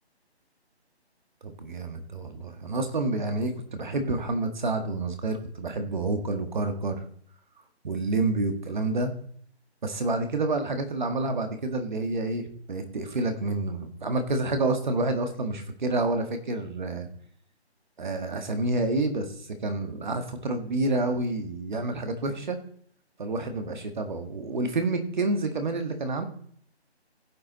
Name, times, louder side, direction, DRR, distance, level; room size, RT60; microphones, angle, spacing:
voice 1, 1.4-7.0 7.8-9.1 9.8-17.1 18.0-22.6 23.2-26.2, right 2 dB, 45° right, 7 dB, 1.9 m, -28 dB
15.5 x 7.8 x 4.1 m, 0.62 s
figure-of-eight pair, 160°, 33 cm